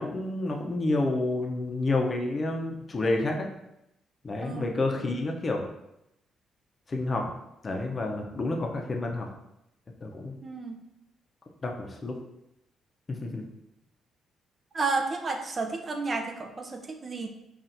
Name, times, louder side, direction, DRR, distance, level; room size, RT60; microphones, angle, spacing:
voice 1, 0.0-3.5 4.2-5.6 6.9-7.3 7.6-9.3 10.0-10.3 11.6-12.2 13.1-13.4, left 2 dB, 30° left, 2 dB, 0.6 m, -29 dB
voice 2, 4.4-4.8 10.4-10.8 14.7-17.3, right 3 dB, 35° right, 4 dB, 0.5 m, -32 dB
5.5 x 2.4 x 2.6 m, 0.85 s
cardioid pair, 90°, 0 cm